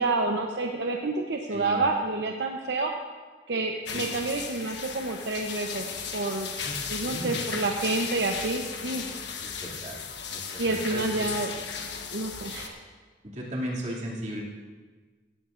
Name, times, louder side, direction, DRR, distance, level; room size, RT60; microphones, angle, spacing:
voice 1, 0.0-2.9 3.5-5.8 6.1-6.5 6.9-9.0 10.6-11.5 12.1-12.8, right 3 dB, 70° right, 2 dB, 0.8 m, -28 dB
voice 2, 1.5-1.9 3.9-4.2 6.6-7.5 9.4-10.0 10.3-11.3 13.2-14.4, equal, 40° right, -5 dB, 2.6 m, -36 dB
sound 1, 3.9-12.7, left 6 dB, 75° left, 1.2 m, -36 dB
17.0 x 14.0 x 2.6 m, 1.4 s
head